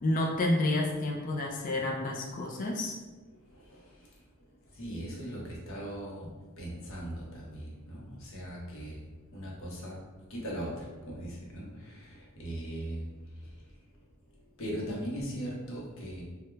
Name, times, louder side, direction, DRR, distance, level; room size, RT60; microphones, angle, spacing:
voice 1, 0.0-3.0, left 1 dB, 40° left, -1 dB, 0.3 m, -29 dB
voice 2, 4.8-6.3 6.6-9.0 9.3-10.0 10.3-11.7 12.4-13.1 14.6-16.2, equal, 65° left, -3 dB, 0.7 m, -38 dB
3.0 x 2.1 x 2.2 m, 1.2 s
head